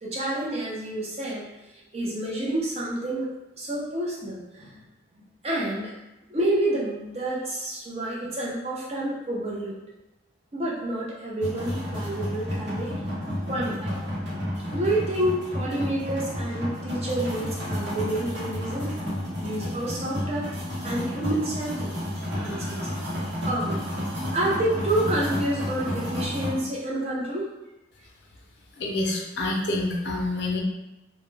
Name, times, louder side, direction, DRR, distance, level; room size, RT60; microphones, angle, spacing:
voice 1, 0.0-1.5 1.9-3.3 3.6-4.8 5.4-5.9 6.3-9.7 10.5-12.9 13.5-14.0 14.7-18.9 19.4-20.6 20.8-22.9 23.2-23.8 24.3-27.5, right 1 dB, 35° right, -5 dB, 0.5 m, -29 dB
sound 1, 11.4-26.5, equal, 70° right, 1.0 m, -31 dB
voice 2, 28.8-30.6, left 2 dB, 65° left, -1 dB, 0.5 m, -27 dB
2.2 x 2.1 x 3.1 m, 0.95 s
head